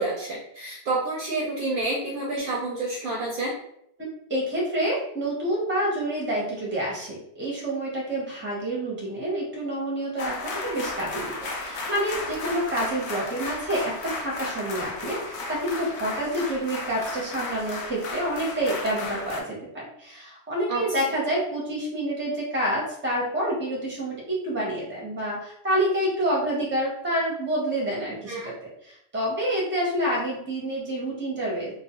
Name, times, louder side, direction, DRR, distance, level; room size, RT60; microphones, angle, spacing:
voice 1, 0.0-3.5 20.7-20.8 28.3-28.5, right 2 dB, 60° right, -3 dB, 0.6 m, -28 dB
voice 2, 4.3-28.5 28.8-31.7, right 1 dB, 10° right, -4 dB, 0.6 m, -28 dB
sound 1, 10.2-19.4, left 3 dB, 75° left, 0.8 m, -34 dB
2.3 x 2.3 x 2.8 m, 0.72 s
omnidirectional pair, 1.1 m